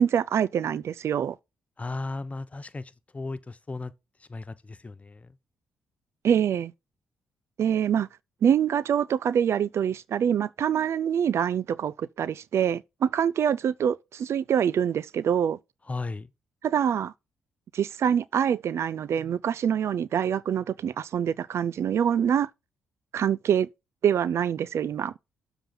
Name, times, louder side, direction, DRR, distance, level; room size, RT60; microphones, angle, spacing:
voice 1, 0.0-1.4 6.2-6.7 7.6-8.1 8.4-15.6 16.6-17.1 17.7-22.5 23.1-23.7 24.0-25.2, right 8 dB, 60° right, 0.4 m, -25 dB
voice 2, 1.8-3.9 4.3-5.3 15.9-16.3, left 3 dB, 25° left, 0.8 m, -35 dB
6.9 x 3.8 x 5.6 m
supercardioid pair, 60°, 5 cm